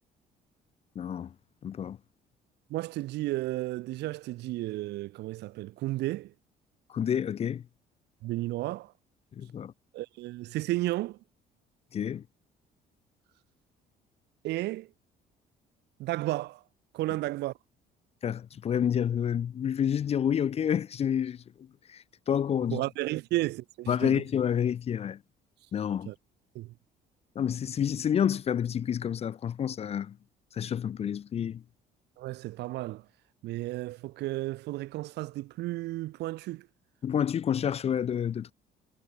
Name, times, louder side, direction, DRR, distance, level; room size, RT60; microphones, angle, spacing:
voice 1, 1.0-1.3 1.6-2.0 6.9-7.6 9.4-9.7 11.9-12.2 18.2-21.4 21.9-22.8 23.9-25.2 25.7-26.1 27.4-30.2 30.5-31.6 37.0-38.5, left 8 dB, 35° left, 0.5 m, -29 dB
voice 2, 2.7-6.3 8.2-8.9 9.9-11.2 14.4-14.9 16.0-16.6 16.9-17.5 22.7-24.2 26.1-26.2 26.5-26.7 32.2-33.0 33.4-36.7, right 17 dB, 80° right, 3.9 m, -33 dB
cardioid pair, 110°, 17 cm